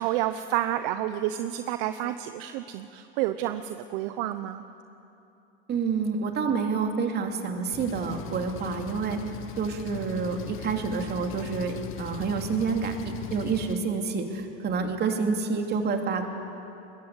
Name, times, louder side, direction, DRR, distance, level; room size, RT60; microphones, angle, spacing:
voice 1, 0.0-4.6, right 13 dB, 50° right, 10 dB, 0.9 m, -29 dB
voice 2, 5.7-9.2 9.6-16.3, right 5 dB, 30° right, 4 dB, 2.6 m, -28 dB
Engine, 7.7-13.7, left 9 dB, 35° left, 1.4 m, -39 dB
22.5 x 20.5 x 8.1 m, 2.9 s
supercardioid pair, 130°, 35 cm